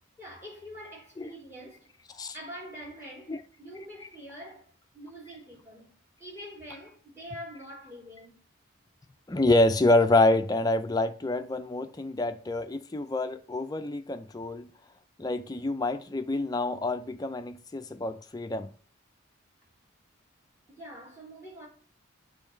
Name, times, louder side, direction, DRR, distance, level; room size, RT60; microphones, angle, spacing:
voice 1, 0.2-2.0 2.3-5.9 6.2-8.4 20.7-21.7, equal, 15° right, 3.2 m, -45 dB
voice 2, 9.3-14.7 15.2-18.7, left 2 dB, 20° left, 0.4 m, -27 dB
8.6 x 3.2 x 4.4 m
head